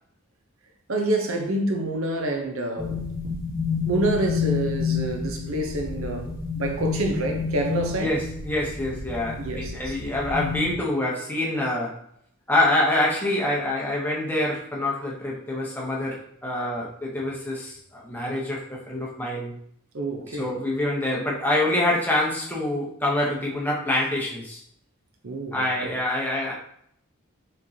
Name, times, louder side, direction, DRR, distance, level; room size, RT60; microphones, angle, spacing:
voice 1, 0.9-3.1 3.8-8.2 9.4-10.0 19.9-20.5 25.2-25.9, right 2 dB, 75° right, 0.7 m, -27 dB
sound 1, 2.8-10.7, left 6 dB, 30° right, 1.6 m, -30 dB
voice 2, 8.0-12.0 12.5-19.5 20.4-24.6 25.5-26.5, left 1 dB, 10° left, 0.8 m, -26 dB
5.0 x 3.1 x 2.8 m
head